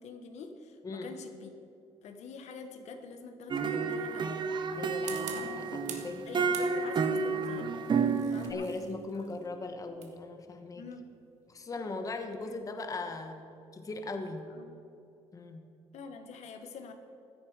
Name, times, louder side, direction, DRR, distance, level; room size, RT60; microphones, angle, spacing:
voice 1, 0.0-1.5 2.0-4.4 5.1-5.4 6.3-7.7 8.3-8.7 9.1-9.2 10.8-11.1 12.4-12.6 14.5-14.7 15.9-16.9, left 5 dB, 70° left, 6 dB, 1.2 m, -46 dB
sound 1, 3.5-8.5, right 5 dB, 40° right, 0.9 m, -30 dB
voice 2, 4.8-6.3 8.5-10.9 11.5-13.4 13.7-14.5 15.3-15.6, left 3 dB, 30° left, 5 dB, 1.1 m, -39 dB
sound 2, 4.9-6.2 6.5-7.2 7.9-12.6, right 8 dB, 75° right, 1.5 m, -47 dB
15.0 x 9.7 x 4.8 m, 2.8 s
cardioid pair, 120°, 12 cm